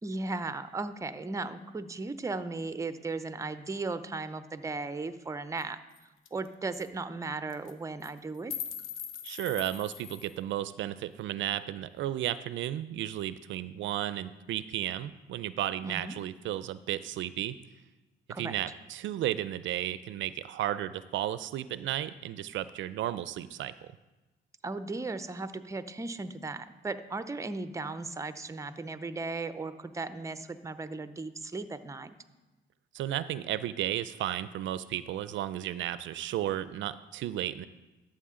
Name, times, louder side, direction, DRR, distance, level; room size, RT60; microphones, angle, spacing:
voice 1, 0.0-5.8 6.3-8.5 15.8-16.1 18.3-18.5 24.6-32.1, right 3 dB, 15° right, 12 dB, 0.6 m, -36 dB
sound 1, 5.6-5.7 6.0-6.1 6.3-6.5 6.7-6.9 7.5-7.7 8.0-10.4, left 8 dB, 90° left, 0.8 m, -41 dB
voice 2, 9.2-17.6 18.4-23.7 32.9-37.7, right 12 dB, 75° right, 15 dB, 0.4 m, -33 dB
12.5 x 7.4 x 3.7 m, 1.1 s
cardioid pair, 90°, 20 cm